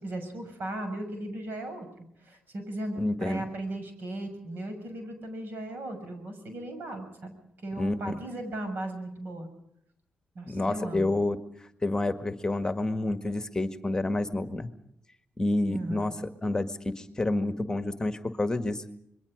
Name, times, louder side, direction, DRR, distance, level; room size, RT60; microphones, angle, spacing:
voice 1, 0.0-7.3 7.6-9.5 10.3-11.1 15.7-16.1, right 1 dB, 70° right, 7 dB, 6.5 m, -37 dB
voice 2, 3.0-3.4 7.7-8.2 10.5-11.4 11.8-14.7 15.4-16.2 16.4-18.8, left 2 dB, 20° left, 9 dB, 1.7 m, -29 dB
26.0 x 22.0 x 5.1 m, 0.75 s
cardioid pair, 75°, 4 cm